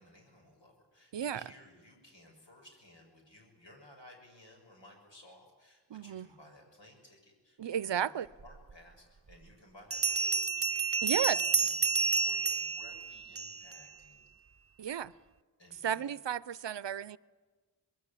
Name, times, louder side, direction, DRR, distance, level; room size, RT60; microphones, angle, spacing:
voice 1, 0.0-14.3 15.6-16.2, left 1 dB, 85° left, 6.9 m, -58 dB
voice 2, 1.1-1.5 5.9-6.3 7.6-8.3 11.0-11.4 14.8-15.1 15.8-17.2, right 9 dB, 80° right, 0.6 m, -33 dB
Bell, 8.7-8.8 9.9-13.8, right 4 dB, 35° right, 0.6 m, -30 dB
24.5 x 20.5 x 8.5 m
wide cardioid pair, 40°, 43 cm